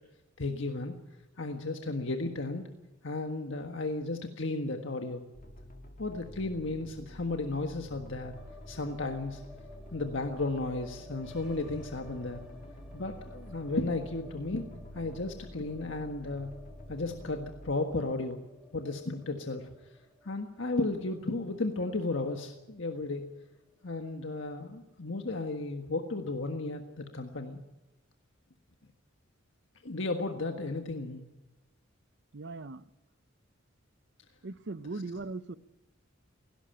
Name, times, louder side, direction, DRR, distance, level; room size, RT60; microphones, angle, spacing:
voice 1, 0.4-0.9 1.4-2.6 3.0-5.2 6.0-8.3 8.7-9.4 9.9-12.4 12.9-14.6 14.9-16.5 16.9-18.4 18.7-19.7 20.2-23.2 23.8-27.6 29.8-31.2, left 2 dB, 65° left, 4 dB, 1.6 m, -34 dB
sound 1, 5.3-17.7, equal, 45° left, 2.0 m, -49 dB
sound 2, 8.3-24.5 24.7-24.8 25.1-25.8, left 2 dB, ahead, 5.4 m, -54 dB
voice 2, 32.3-32.9 34.4-35.6, right 3 dB, 60° right, 15 dB, 0.7 m, -39 dB
17.5 x 17.5 x 9.0 m, 0.96 s
head